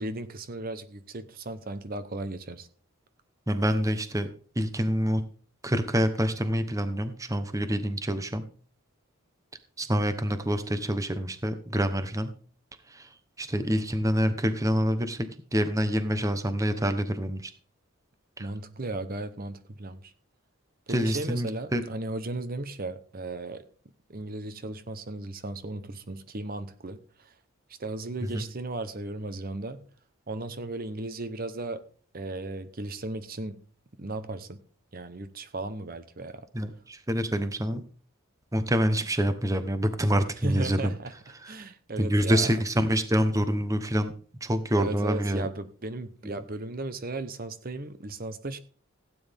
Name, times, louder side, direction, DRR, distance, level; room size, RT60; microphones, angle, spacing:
voice 1, 0.0-2.7 18.4-20.1 20.9-23.6 24.1-27.3 27.8-29.8 30.3-31.8 32.1-33.6 34.0-34.6 34.9-36.4 40.4-41.1 41.4-42.5 44.8-48.6, right 2 dB, 45° right, 11 dB, 0.9 m, -35 dB
voice 2, 3.5-4.3 4.6-5.2 5.6-8.4 9.8-12.3 12.9-13.1 13.4-17.5 18.4-18.5 20.9-21.8 28.2-28.4 36.5-37.8 38.5-40.9 41.4-41.5 42.0-44.1 44.4-45.5 46.2-46.4, equal, 15° right, 10 dB, 0.9 m, -26 dB
16.5 x 9.5 x 3.5 m, 0.44 s
head